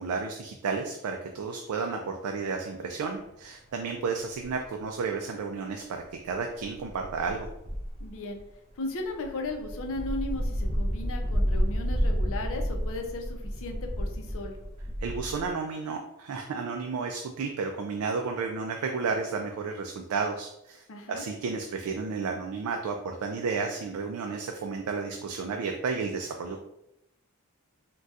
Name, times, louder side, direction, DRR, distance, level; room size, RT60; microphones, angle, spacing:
voice 1, 0.0-7.5 15.0-26.7, right 4 dB, 75° right, 3 dB, 0.3 m, -32 dB
sound 1, 2.9-3.0 4.4-4.6 6.6-8.4 9.1-15.5, equal, 25° right, 0.5 m, -31 dB
voice 2, 8.0-8.4 8.8-14.6 20.9-21.2, left 2 dB, 65° left, 3 dB, 0.5 m, -36 dB
3.9 x 2.2 x 2.4 m, 0.84 s
head